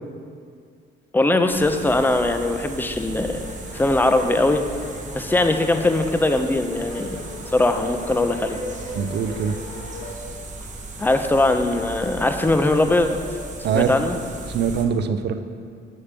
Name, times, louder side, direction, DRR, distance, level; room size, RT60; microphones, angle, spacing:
voice 1, 1.1-3.4 3.7-4.6 5.1-7.2 7.5-8.6 11.0-13.1 13.7-14.2, left 2 dB, 10° left, 7 dB, 0.5 m, -20 dB
sound 1, 1.5-14.9, right 2 dB, 40° right, 0.8 m, -37 dB
sound 2, 3.1-10.2, left 2 dB, 70° left, 0.8 m, -39 dB
sound 3, 5.7-5.9 6.8-7.0 7.9-8.0 8.9-9.1 10.0-10.2 11.1-11.3 12.2-12.3 13.2-13.4, left 6 dB, 55° left, 1.1 m, -41 dB
voice 2, 8.9-9.6 13.6-13.9 14.5-15.4, right 7 dB, 60° right, 10 dB, 0.5 m, -23 dB
7.3 x 6.7 x 3.3 m, 2.2 s
cardioid pair, 90°, 20 cm